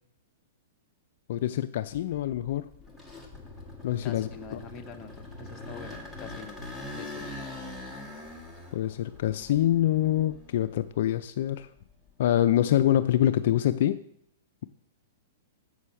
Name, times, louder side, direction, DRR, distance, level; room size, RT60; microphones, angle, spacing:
voice 1, 1.3-2.7 3.8-4.6 8.7-11.7 12.2-14.0, left 12 dB, 60° left, 11 dB, 0.3 m, -25 dB
sound 1, 2.1-11.0 11.4-13.3, left 2 dB, ahead, 1.4 m, -43 dB
voice 2, 4.0-6.6 6.9-7.2, left 5 dB, 25° left, 4 dB, 0.8 m, -45 dB
7.6 x 6.3 x 5.6 m, 0.70 s
hypercardioid pair, 150°, 0 cm